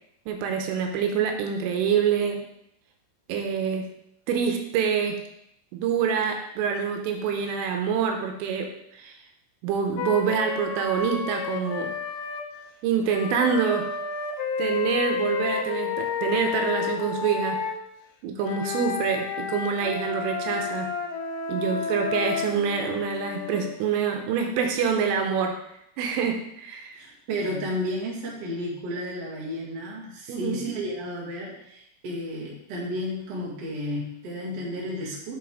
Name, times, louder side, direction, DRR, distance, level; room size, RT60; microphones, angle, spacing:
voice 1, 0.3-2.4 3.3-3.8 4.3-5.2 5.7-8.7 8.9-9.1 9.6-11.9 12.8-13.8 14.6-17.6 18.2-20.9 21.5-25.5 26.0-27.0 30.3-30.6, right 6 dB, 85° right, 4 dB, 3.3 m, -26 dB
Wind instrument woodwind instrument, 10.0-12.5 13.1-17.8 18.4-23.8, left 5 dB, 90° left, 2.4 m, -31 dB
voice 2, 26.9-35.3, equal, 55° right, -5 dB, 1.8 m, -32 dB
7.2 x 6.0 x 3.7 m, 0.77 s
omnidirectional pair, 5.8 m